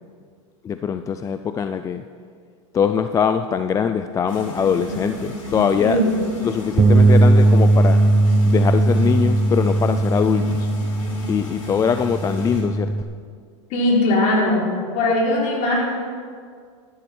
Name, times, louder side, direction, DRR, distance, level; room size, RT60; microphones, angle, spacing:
voice 1, 0.6-2.0 2.7-6.0 6.4-8.0 8.5-10.7 11.3-12.9, left 7 dB, 20° left, 9 dB, 0.4 m, -22 dB
sound 1, 4.3-12.6, left 1 dB, 85° left, 3.7 m, -32 dB
voice 2, 5.8-6.2 13.7-14.7 14.9-15.8, left 1 dB, 45° left, -2 dB, 3.8 m, -19 dB
Bass guitar, 6.8-13.0, right 2 dB, 15° right, 0.7 m, -17 dB
13.0 x 12.0 x 4.5 m, 2.1 s
hypercardioid pair, 120°, 16 cm